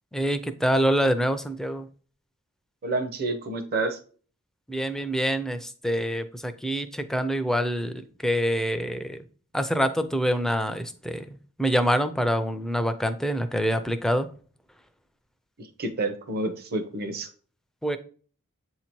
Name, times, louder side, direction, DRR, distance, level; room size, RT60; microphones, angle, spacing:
voice 1, 0.1-1.9 4.7-9.3 9.5-14.3 17.8-18.0, equal, ahead, 9 dB, 0.4 m, -26 dB
voice 2, 2.8-4.0 15.6-17.3, right 2 dB, 45° right, 7 dB, 0.7 m, -29 dB
8.0 x 2.8 x 4.5 m, 0.41 s
head